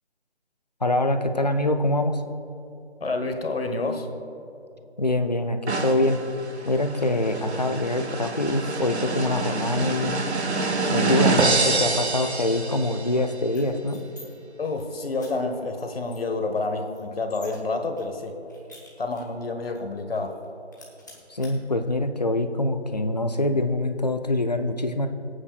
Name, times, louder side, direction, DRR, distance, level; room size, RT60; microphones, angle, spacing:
voice 1, 0.8-2.2 5.0-6.2 6.7-10.1 10.9-14.0 21.3-25.1, left 1 dB, 40° left, 8 dB, 0.4 m, -24 dB
voice 2, 3.0-4.1 14.6-18.4 19.0-20.4, left 3 dB, 60° left, 6 dB, 1.2 m, -28 dB
sound 1, 5.7-13.2, right 3 dB, 75° right, 1.0 m, -26 dB
sound 2, 13.4-14.2 14.6-14.8 15.2-15.3 15.7-15.8 16.1-17.6 18.0-19.4 19.7-19.8 20.2-20.4 20.7-21.5, left 2 dB, 15° left, 0.9 m, -48 dB
22.5 x 8.6 x 2.3 m, 2.9 s
figure-of-eight pair, 170°, 33 cm